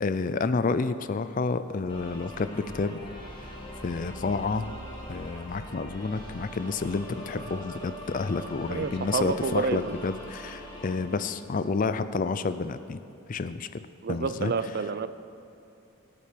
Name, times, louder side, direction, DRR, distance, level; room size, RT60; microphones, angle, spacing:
voice 1, 0.0-3.0 3.8-4.8 5.1-13.0 13.3-13.8 14.1-14.5, left 4 dB, 40° left, 12 dB, 0.4 m, -29 dB
sound 1, 1.9-11.8, equal, 20° left, 1.8 m, -42 dB
voice 2, 8.7-10.0 14.0-15.1, right 4 dB, 45° right, 13 dB, 0.4 m, -29 dB
18.0 x 8.4 x 5.1 m, 2.7 s
head